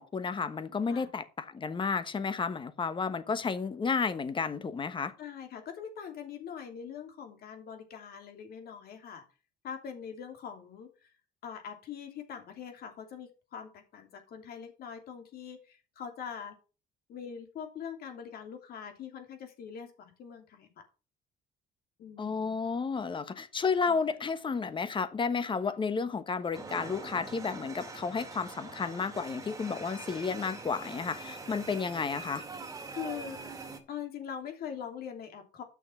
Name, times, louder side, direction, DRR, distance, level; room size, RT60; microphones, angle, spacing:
voice 1, 0.0-5.1 22.2-32.4, left 5 dB, 30° left, 1.2 m, -32 dB
voice 2, 5.2-9.2 9.6-11.1 11.4-16.5 17.1-20.7 22.0-22.6 23.9-24.1 32.9-33.4 33.9-35.6, left 7 dB, 65° left, 2.9 m, -43 dB
sound 1, 26.5-33.8, right 3 dB, 20° right, 2.2 m, -43 dB
8.9 x 6.4 x 5.6 m
cardioid pair, 110°, 17 cm